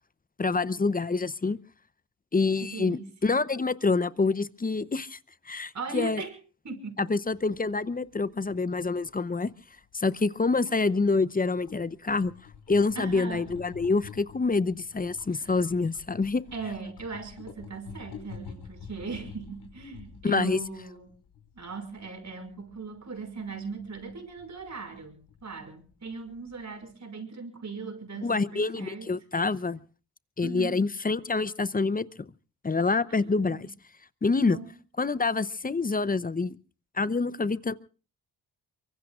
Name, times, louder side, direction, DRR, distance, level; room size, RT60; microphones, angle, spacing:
voice 1, 0.4-1.6 2.3-5.2 5.5-6.2 7.0-9.5 9.9-12.3 12.7-16.4 20.2-20.6 28.2-29.8 30.4-32.1 32.6-33.7 34.2-34.6 35.0-36.6 37.0-37.7, left 3 dB, 20° left, 17 dB, 0.8 m, -26 dB
voice 2, 2.6-3.1 5.7-6.4 6.6-7.0 13.0-13.4 15.3-15.5 16.5-21.1 21.5-29.1 30.4-30.8 33.1-33.7 34.4-34.7, right 4 dB, 45° right, 7 dB, 5.7 m, -39 dB
sound 1, 7.4-26.9, left 6 dB, 80° left, 5.5 m, -50 dB
24.0 x 23.5 x 2.4 m, 0.37 s
supercardioid pair, 60°, 41 cm